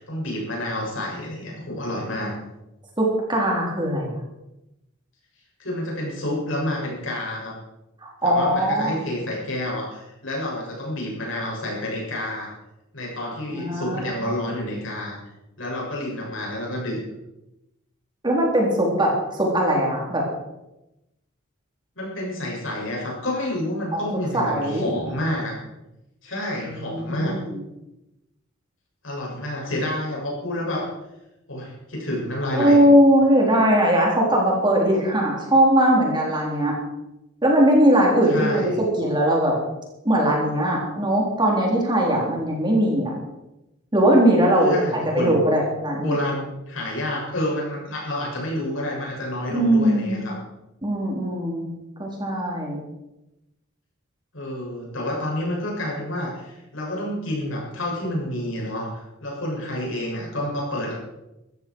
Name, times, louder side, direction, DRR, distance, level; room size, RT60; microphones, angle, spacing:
voice 1, 0.0-2.3 5.6-7.5 8.2-12.5 12.9-15.2 15.6-17.0 22.0-25.5 26.2-27.4 29.0-30.9 31.5-32.8 38.3-38.8 44.6-45.3 46.0-50.4 54.3-60.9, left 1 dB, 70° left, -3 dB, 7.1 m, -29 dB
voice 2, 3.0-4.1 8.0-9.0 13.6-14.3 18.2-20.2 23.9-24.0 24.3-24.9 26.6-27.6 32.6-36.7 37.4-39.5 40.0-43.1 43.9-44.7 45.1-46.2 49.5-50.2 50.8-51.7 52.0-52.8, right 1 dB, 20° right, -2 dB, 3.9 m, -20 dB
15.5 x 14.5 x 4.7 m, 0.93 s
head